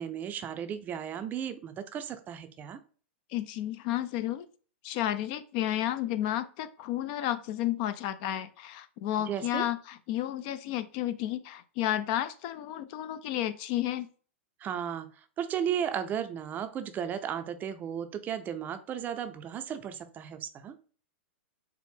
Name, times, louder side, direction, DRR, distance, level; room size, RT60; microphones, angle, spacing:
voice 1, 0.0-2.8 9.3-9.6 14.6-20.8, right 8 dB, 25° right, 9 dB, 0.4 m, -35 dB
voice 2, 3.3-4.5 4.8-14.1, left 13 dB, 50° left, 13 dB, 0.3 m, -32 dB
4.3 x 2.0 x 3.4 m, 0.41 s
hypercardioid pair, 115°, 7 cm